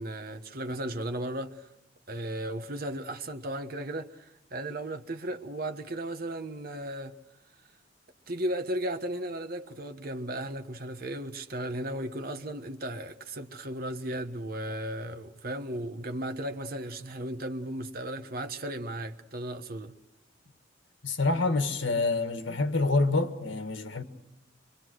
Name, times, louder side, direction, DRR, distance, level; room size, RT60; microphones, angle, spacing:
voice 1, 0.0-1.7 2.1-7.2 8.3-19.9, right 1 dB, 50° right, 1.3 m, -35 dB
voice 2, 21.0-24.0, left 3 dB, 80° left, 1.8 m, -27 dB
25.5 x 24.0 x 6.4 m
head